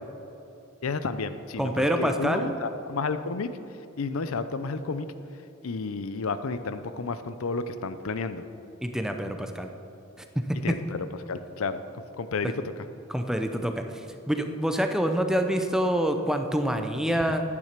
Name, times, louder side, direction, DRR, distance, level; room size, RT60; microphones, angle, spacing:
voice 1, 0.8-3.5 4.0-5.1 5.6-8.4 10.6-11.0 11.3-12.5, left 4 dB, 75° left, 11 dB, 0.6 m, -31 dB
voice 2, 1.6-2.6 8.8-9.7 10.4-10.7 13.1-13.8 14.3-17.4, equal, 5° right, 6 dB, 0.6 m, -26 dB
10.5 x 9.8 x 5.9 m, 2.9 s
head